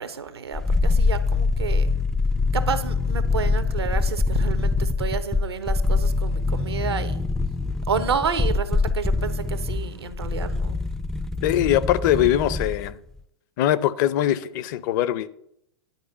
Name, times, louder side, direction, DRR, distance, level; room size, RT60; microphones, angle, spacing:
voice 1, 0.0-1.9 2.5-7.2 7.9-10.8, right 6 dB, 80° right, 1.1 m, -30 dB
sound 1, 0.5-12.9 13.2-13.3, left 3 dB, 5° left, 0.4 m, -24 dB
voice 2, 11.4-13.0 13.6-15.3, left 12 dB, 50° left, 0.6 m, -22 dB
10.5 x 4.8 x 8.0 m
hypercardioid pair, 105°, 13 cm